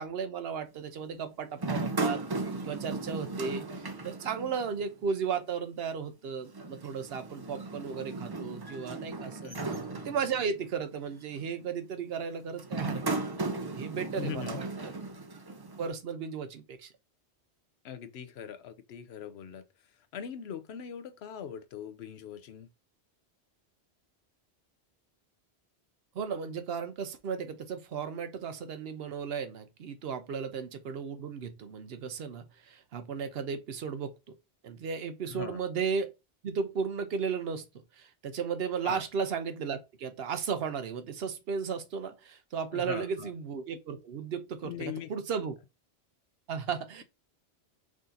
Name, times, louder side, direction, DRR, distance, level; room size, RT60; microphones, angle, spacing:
voice 1, 0.0-2.2 2.6-14.9 15.8-16.9 26.1-34.3 34.6-36.1 36.4-37.6 38.0-45.6 46.5-47.0, right 6 dB, 65° right, 0.9 m, -35 dB
sound 1, 1.6-4.9 5.2-5.3 6.5-10.7 11.3-11.6 12.6-15.9, right 3 dB, 30° right, 0.5 m, -36 dB
voice 2, 14.1-14.6 17.8-19.6 20.1-22.7 35.3-35.6 38.8-39.0 42.7-43.3 44.6-45.1, left 8 dB, 70° left, 0.9 m, -41 dB
4.9 x 2.7 x 3.8 m
omnidirectional pair, 1.1 m